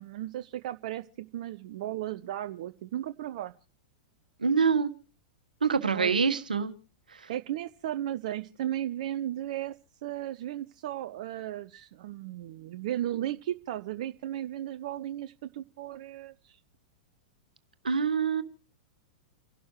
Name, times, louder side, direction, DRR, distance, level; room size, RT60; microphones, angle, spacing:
voice 1, 0.0-3.5 5.9-6.1 7.3-9.7 10.0-16.6, right 12 dB, 55° right, 10 dB, 0.7 m, -35 dB
voice 2, 4.4-4.9 5.6-6.7 7.2-7.3 17.8-18.4, right 5 dB, 85° right, 10 dB, 1.4 m, -25 dB
30.0 x 12.0 x 3.1 m, 0.38 s
figure-of-eight pair, 100°, 4 cm